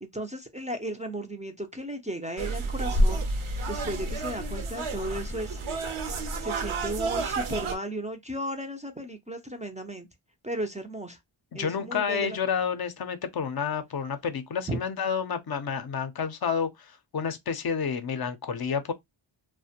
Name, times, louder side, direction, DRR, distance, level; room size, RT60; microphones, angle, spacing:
voice 1, 0.0-3.3 3.7-5.6 6.4-10.1 10.4-11.2 11.5-12.4 14.7-14.8, right 1 dB, 15° right, 0.3 m, -35 dB
sound 1, 2.4-7.7, right 2 dB, 75° right, 0.7 m, -29 dB
voice 2, 11.5-18.9, left 6 dB, 50° left, 0.5 m, -30 dB
2.4 x 2.1 x 2.7 m
wide cardioid pair, 95°, 50 cm